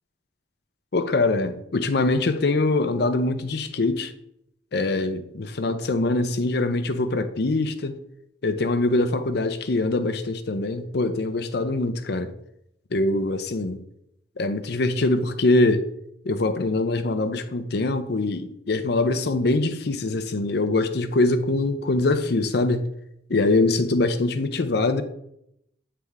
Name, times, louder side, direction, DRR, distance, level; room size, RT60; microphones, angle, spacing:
voice 1, 0.9-4.1 4.7-8.0 8.4-12.3 12.9-13.8 14.4-15.9 16.2-22.9 23.3-25.0, left 2 dB, 65° left, 0.6 m, -23 dB
9.4 x 3.4 x 3.5 m
head